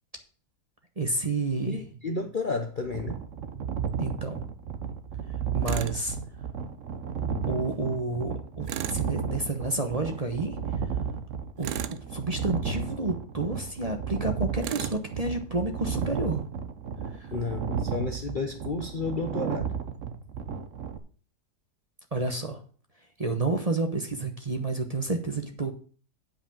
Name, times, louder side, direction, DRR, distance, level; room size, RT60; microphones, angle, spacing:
voice 1, 1.0-1.8 4.0-4.4 5.5-6.2 7.5-10.6 11.6-16.4 17.2-17.3 22.1-22.6 23.2-25.7, right 2 dB, 25° right, 5 dB, 1.0 m, -30 dB
voice 2, 1.7-3.2 17.3-19.7, left 3 dB, 40° left, 5 dB, 0.8 m, -32 dB
sound 1, 2.8-21.0, right 6 dB, 55° right, 1.1 m, -33 dB
Tools, 5.7-6.0 8.7-9.1 11.6-12.1 14.6-15.0, right 12 dB, 80° right, 1.2 m, -34 dB
8.7 x 5.1 x 7.3 m, 0.41 s
omnidirectional pair, 1.8 m